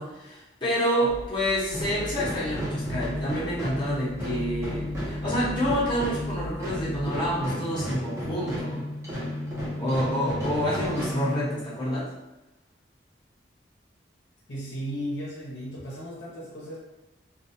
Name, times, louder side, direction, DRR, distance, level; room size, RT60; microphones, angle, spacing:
voice 1, 0.0-8.9 9.8-12.1, equal, 25° left, -9 dB, 0.8 m, -28 dB
sound 1, 1.1-7.5, equal, 50° right, 0.7 m, -40 dB
sound 2, 1.7-11.9, equal, 15° right, 0.6 m, -33 dB
voice 2, 14.5-16.8, equal, 65° left, -5 dB, 0.7 m, -35 dB
2.3 x 2.3 x 2.7 m, 0.99 s
head